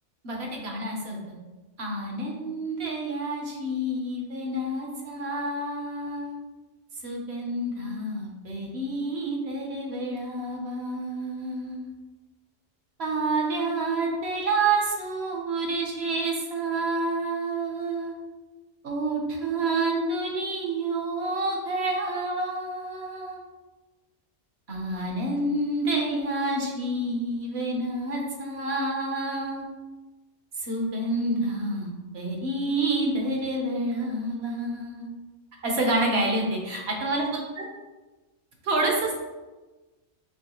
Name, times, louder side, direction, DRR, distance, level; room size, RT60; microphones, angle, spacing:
voice 1, 0.2-1.2 1.8-6.4 7.0-11.9 13.0-18.2 18.8-23.4 24.7-29.7 30.6-31.9 32.1-35.1 35.6-37.3 37.6-37.7 38.6-39.1, right 2 dB, 65° right, 0 dB, 1.1 m, -28 dB
4.6 x 3.1 x 3.0 m, 1.2 s
omnidirectional pair, 1.2 m